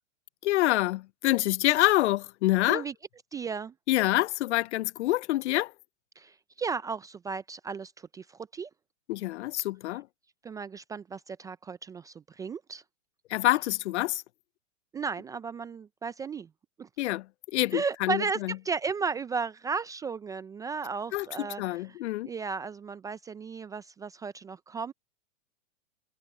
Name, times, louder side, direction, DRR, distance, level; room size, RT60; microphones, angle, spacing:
voice 1, 0.4-2.8 3.9-5.7 9.1-10.1 13.3-14.2 17.0-17.3 17.5-18.5 21.1-22.3, left 17 dB, 55° left, 0.6 m, -26 dB
voice 2, 3.3-3.7 6.2-8.7 10.4-12.8 14.9-16.5 16.8-16.9 17.7-21.8 22.2-24.9, right 5 dB, 10° right, 0.4 m, -34 dB
hypercardioid pair, 120°, 41 cm